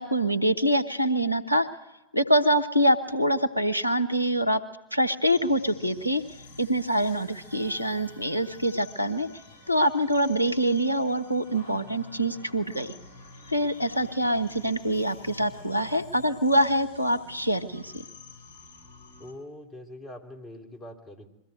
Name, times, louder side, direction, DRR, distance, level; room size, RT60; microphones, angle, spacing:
voice 1, 0.0-1.7 2.1-4.6 4.9-6.2 6.6-9.3 9.7-12.9 13.5-18.0, equal, 90° right, 11 dB, 1.0 m, -25 dB
sound 1, 5.3-19.3, left 2 dB, 55° left, 5.2 m, -49 dB
voice 2, 19.2-21.3, left 1 dB, 20° left, 4 dB, 3.1 m, -43 dB
22.5 x 15.5 x 9.4 m, 1.0 s
figure-of-eight pair, 90°, 0 cm